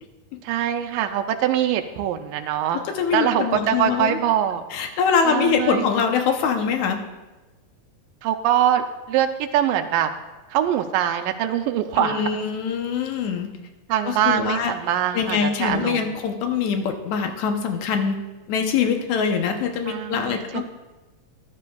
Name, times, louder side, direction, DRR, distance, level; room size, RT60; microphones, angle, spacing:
voice 1, 0.4-2.8 3.1-4.6 5.3-5.9 8.2-10.1 10.5-12.3 13.9-16.1 19.9-20.6, right 10 dB, 90° right, 6 dB, 2.3 m, -23 dB
voice 2, 2.7-4.2 4.7-7.0 12.0-13.5 14.0-14.7 15.1-18.2 18.5-20.6, left 6 dB, 70° left, 5 dB, 2.0 m, -23 dB
14.0 x 12.0 x 2.3 m, 1.1 s
omnidirectional pair, 3.9 m